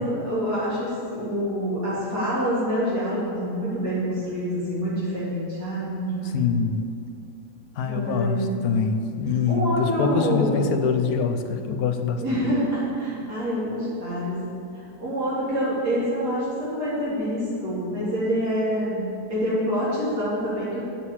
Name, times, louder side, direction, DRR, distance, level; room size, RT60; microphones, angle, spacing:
voice 1, 0.0-6.4 7.9-8.5 9.5-10.6 12.2-14.4 14.7-20.8, equal, 75° right, -10 dB, 3.7 m, -26 dB
voice 2, 6.3-6.8 7.8-12.4, left 5 dB, 70° left, 7 dB, 1.1 m, -24 dB
8.3 x 6.4 x 7.3 m, 2.5 s
omnidirectional pair, 1.8 m